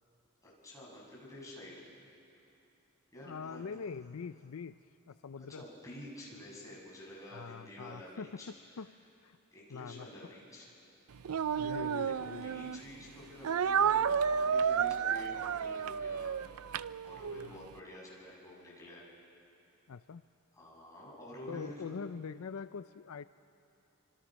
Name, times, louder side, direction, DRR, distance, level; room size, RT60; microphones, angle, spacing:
voice 1, 0.4-1.7 3.1-3.6 5.5-8.5 9.5-10.7 11.6-16.4 17.0-19.0 20.5-22.0, equal, 15° left, -5 dB, 6.9 m, -49 dB
voice 2, 3.2-4.8 5.1-5.6 7.3-9.0 9.2-9.4 9.7-10.1 11.5-12.5 17.4-17.6 19.9-20.2 21.5-23.3, left 5 dB, 80° left, 13 dB, 0.5 m, -43 dB
Speech, 11.2-12.8 13.4-17.5, right 7 dB, 85° right, 0.5 m, -31 dB
29.0 x 25.5 x 6.3 m, 2.9 s
head